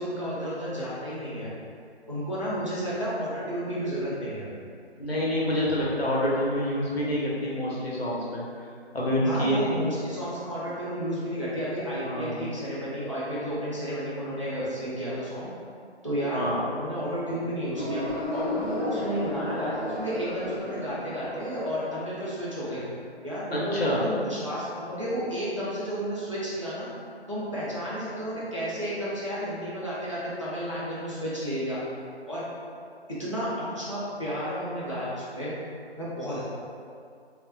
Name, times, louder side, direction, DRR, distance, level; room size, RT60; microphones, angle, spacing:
voice 1, 0.0-1.5 2.1-4.5 9.2-15.5 16.0-16.5 16.7-18.0 18.3-22.8 23.2-26.9 27.3-31.8 32.3-32.4 33.1-35.5 36.0-36.5, equal, 30° right, -10 dB, 0.5 m, -32 dB
voice 2, 5.0-8.4 8.9-9.8 12.0-12.5 16.3-16.6 23.5-24.0, equal, 65° left, -6 dB, 0.9 m, -27 dB
sound 1, 17.7-22.1, left 2 dB, ahead, 0.9 m, -34 dB
3.3 x 2.1 x 2.7 m, 2.4 s
figure-of-eight pair, 155°, 33 cm